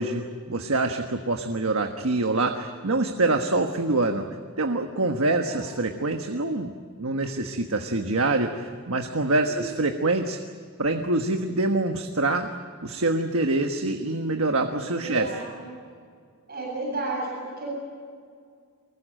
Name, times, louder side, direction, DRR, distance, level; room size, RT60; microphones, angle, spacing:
voice 1, 0.0-4.2 4.6-6.7 7.0-10.4 10.8-12.5 12.8-15.4, right 2 dB, 70° right, 5 dB, 1.4 m, -25 dB
voice 2, 14.7-15.8 16.5-17.7, right 3 dB, 45° right, -2 dB, 7.9 m, -33 dB
24.5 x 21.0 x 9.0 m, 2.1 s
head